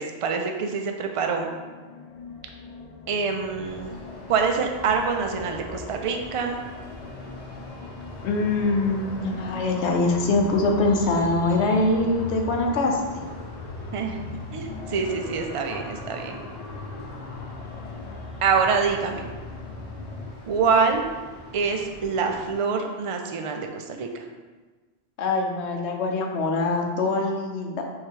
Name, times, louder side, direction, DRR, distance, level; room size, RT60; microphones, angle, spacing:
voice 1, 0.0-1.5 3.1-3.9 4.3-6.6 13.9-14.2 14.5-16.4 18.4-19.2 20.5-21.0 21.5-24.1, right 5 dB, 60° right, 3 dB, 0.3 m, -25 dB
sound 1, 1.4-20.3, left 3 dB, 55° left, 0.4 m, -39 dB
sound 2, 3.6-22.5, left 1 dB, 35° left, 0.8 m, -45 dB
voice 2, 8.2-13.0 25.2-27.8, left 2 dB, 80° left, 2 dB, 1.0 m, -23 dB
3.7 x 3.2 x 4.4 m, 1.3 s
omnidirectional pair, 1.1 m